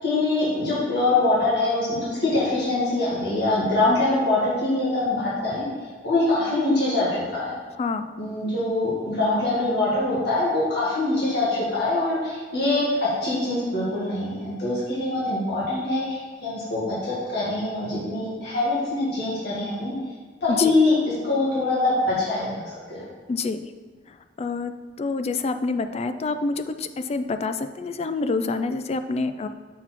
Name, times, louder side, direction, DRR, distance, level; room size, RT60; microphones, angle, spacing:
voice 1, 0.0-5.6 6.0-7.5 8.2-12.9 13.2-19.9 20.4-23.0, left 2 dB, 65° left, -8 dB, 2.0 m, -24 dB
voice 2, 23.3-23.6 24.4-29.5, left 3 dB, 35° left, 10 dB, 0.3 m, -27 dB
7.2 x 4.0 x 4.4 m, 1.5 s
head